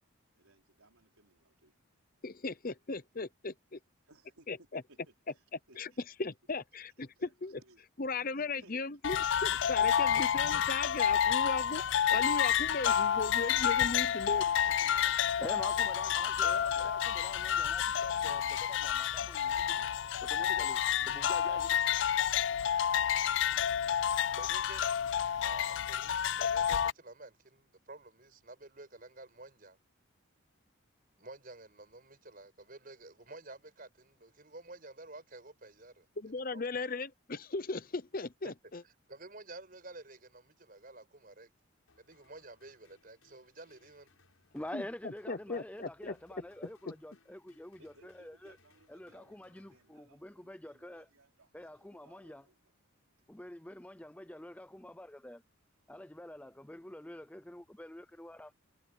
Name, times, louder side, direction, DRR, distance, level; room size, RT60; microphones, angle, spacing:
voice 1, 0.3-1.7 4.0-5.8 7.2-7.8 8.3-8.9 10.3-10.8 14.4-16.0 16.3-17.0 19.6-19.9 47.8-52.7, right 3 dB, 90° right, 4.5 m, -62 dB
voice 2, 2.2-3.8 4.5-4.8 5.8-5.9 6.2-7.1 7.4-7.5 8.0-11.8 12.1-14.4 36.2-38.8 44.7-46.2 46.6-46.9, left 3 dB, 40° left, 0.8 m, -37 dB
sound 1, 9.0-26.9, left 9 dB, 55° left, 0.3 m, -29 dB
voice 3, 15.4-19.9 20.3-21.8 44.5-48.6 48.9-51.1 51.5-52.5 53.3-55.4 55.9-58.5, left 1 dB, 5° left, 0.5 m, -47 dB
voice 4, 24.4-24.9 25.4-29.8 31.2-36.1 36.5-36.6 38.4-38.5 38.8-41.5 42.0-44.1 45.5-45.6, right 2 dB, 40° right, 5.8 m, -51 dB
sound 2, 41.9-50.5, left 3 dB, 80° left, 5.9 m, -69 dB
head